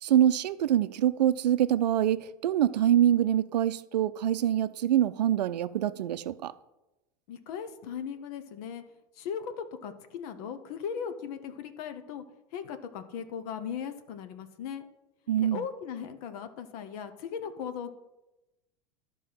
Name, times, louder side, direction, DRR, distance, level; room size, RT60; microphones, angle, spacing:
voice 1, 0.0-6.5 15.3-15.6, right 11 dB, 85° right, 0.5 m, -25 dB
voice 2, 7.3-8.8 9.1-12.2 12.5-14.9 15.4-17.9, left 7 dB, 65° left, 1.1 m, -38 dB
12.0 x 4.6 x 5.6 m
hypercardioid pair, 95°, 21 cm